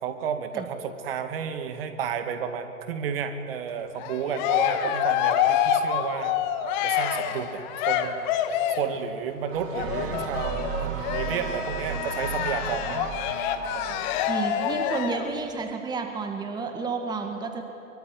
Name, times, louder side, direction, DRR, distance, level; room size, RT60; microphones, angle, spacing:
voice 1, 0.0-6.4 6.8-8.2 8.7-13.1 13.7-14.1, right 7 dB, 45° right, 7 dB, 2.3 m, -32 dB
Cheering, 4.0-9.0 9.7-15.3, left 9 dB, 35° left, 1.7 m, -27 dB
sound 1, 9.5-14.4, right 6 dB, 65° right, 3.5 m, -35 dB
voice 2, 14.3-17.6, right 4 dB, 10° right, 5 dB, 1.9 m, -31 dB
23.5 x 23.5 x 10.0 m, 2.7 s
figure-of-eight pair, 115°, 41 cm